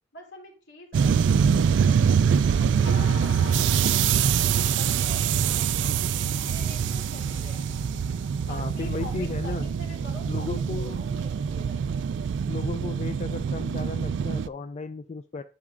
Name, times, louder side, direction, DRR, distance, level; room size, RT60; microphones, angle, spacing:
voice 1, 0.1-4.4 4.7-7.6 8.4-12.0, left 1 dB, 70° left, 0 dB, 2.9 m, -47 dB
sound 1, 0.9-14.5, right 7 dB, 75° right, 0.3 m, -24 dB
sound 2, 2.8-9.6, left 4 dB, 90° left, 1.0 m, -43 dB
voice 2, 8.5-9.7 10.3-11.0 12.5-15.4, left 4 dB, 35° left, 9 dB, 0.3 m, -34 dB
10.5 x 5.9 x 2.5 m, 0.35 s
head